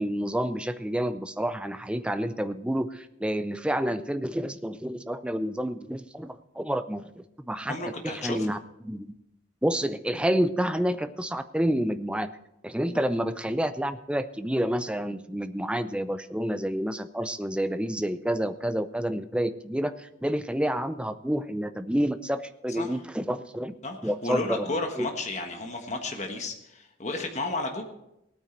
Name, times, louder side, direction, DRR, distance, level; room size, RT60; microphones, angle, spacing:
voice 1, 0.0-7.1 7.5-7.7 8.0-8.6 8.8-9.1 9.6-12.3 12.6-23.7 24.0-25.1, equal, 5° right, 10 dB, 0.5 m, -29 dB
voice 2, 7.7-8.5 22.7-23.0 23.8-27.8, left 2 dB, 35° left, 3 dB, 1.4 m, -33 dB
17.5 x 8.9 x 4.4 m, 0.84 s
head